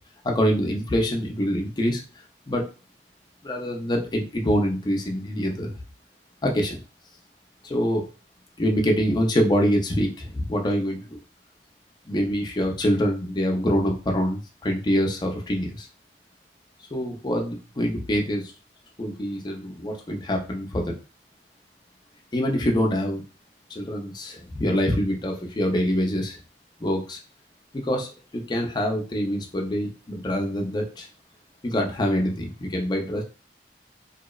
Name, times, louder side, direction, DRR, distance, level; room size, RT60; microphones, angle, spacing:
voice 1, 0.2-2.0 2.5-2.7 3.4-5.7 6.4-6.8 7.6-8.1 8.6-11.2 12.1-15.9 16.9-18.5 19.0-20.9 22.3-23.2 23.7-26.4 26.8-27.2 27.7-31.1 31.6-33.2, equal, 25° left, 1 dB, 0.5 m, -25 dB
2.7 x 2.0 x 2.3 m, 0.33 s
head